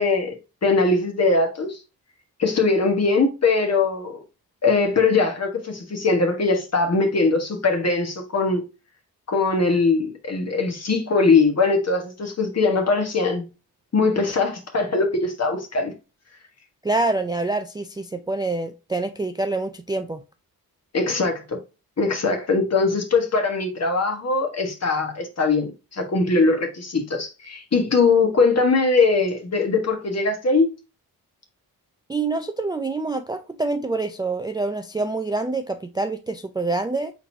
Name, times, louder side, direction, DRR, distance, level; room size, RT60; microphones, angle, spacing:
voice 1, 0.0-1.8 2.4-4.2 4.6-8.6 9.3-13.5 13.9-15.9 20.9-21.6 22.0-30.7, left 3 dB, 45° left, 1.4 m, -21 dB
voice 2, 16.8-20.2 32.1-37.1, right 3 dB, 10° right, 0.3 m, -26 dB
4.5 x 3.9 x 2.7 m
cardioid pair, 80°, 38 cm